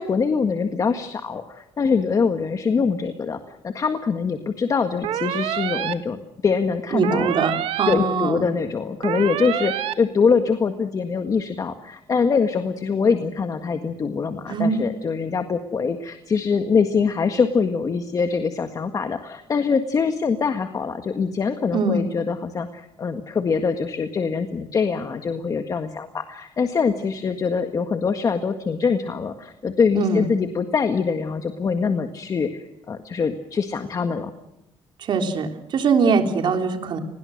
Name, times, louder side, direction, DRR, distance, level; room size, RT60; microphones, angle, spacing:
voice 1, 0.0-7.3 7.9-34.3, left 5 dB, 40° left, 7 dB, 1.7 m, -23 dB
sound 1, 5.0-5.9 7.0-7.9 9.0-9.9, right 12 dB, 90° right, 1.4 m, -27 dB
voice 2, 6.9-8.5 14.5-14.8 21.7-22.0 30.0-30.2 35.0-37.0, right 4 dB, 55° right, 5 dB, 3.6 m, -22 dB
29.5 x 21.0 x 6.6 m, 0.86 s
cardioid pair, 135°, 9 cm